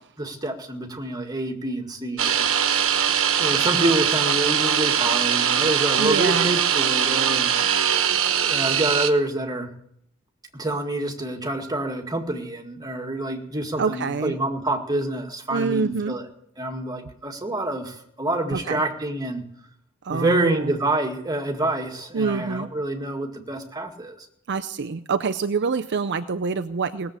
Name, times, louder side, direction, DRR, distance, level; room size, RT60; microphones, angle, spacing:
voice 1, 0.2-2.5 3.4-7.5 8.4-9.7 10.5-16.3 16.6-19.4 20.1-24.3, right 1 dB, 20° right, 2 dB, 2.1 m, -27 dB
sound 1, 2.2-9.1, right 8 dB, 75° right, 1.3 m, -21 dB
voice 2, 6.0-6.6 13.8-14.4 15.5-16.2 18.5-18.8 20.0-20.8 22.1-22.7 24.5-27.2, right 5 dB, 55° right, 9 dB, 0.5 m, -26 dB
19.0 x 7.6 x 8.1 m, 0.71 s
head